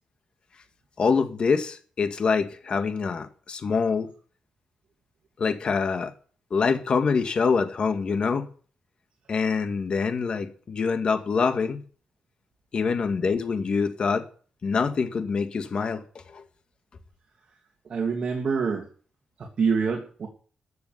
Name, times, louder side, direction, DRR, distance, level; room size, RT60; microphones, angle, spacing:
voice 1, 1.0-4.1 5.4-6.1 6.5-8.5 9.3-11.8 12.7-14.3 14.6-16.0 16.3-16.4, left 5 dB, 50° left, 2.0 m, -25 dB
voice 2, 17.8-18.8 19.4-20.3, right 5 dB, 55° right, 2.9 m, -26 dB
14.5 x 7.0 x 9.5 m
wide cardioid pair, 120°, 2 cm